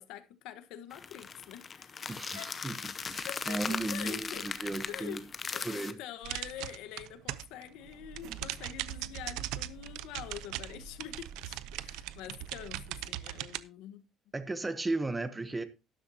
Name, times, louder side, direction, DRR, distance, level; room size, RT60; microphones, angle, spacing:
voice 1, 0.0-1.9 2.3-2.5 3.2-4.6 4.9-5.2 5.5-14.0, left 11 dB, 75° left, 1.2 m, -45 dB
sound 1, 0.9-5.9, left 5 dB, 20° left, 0.7 m, -38 dB
voice 2, 2.1-2.8 3.1-5.2 5.6-6.0 14.3-15.6, right 2 dB, 10° right, 0.8 m, -35 dB
sound 2, 3.0-5.8 6.1-13.2, right 5 dB, 60° right, 1.7 m, -53 dB
sound 3, 6.2-7.6 7.9-13.6, right 15 dB, 80° right, 0.6 m, -39 dB
12.5 x 11.5 x 2.8 m
cardioid pair, 175°, 0 cm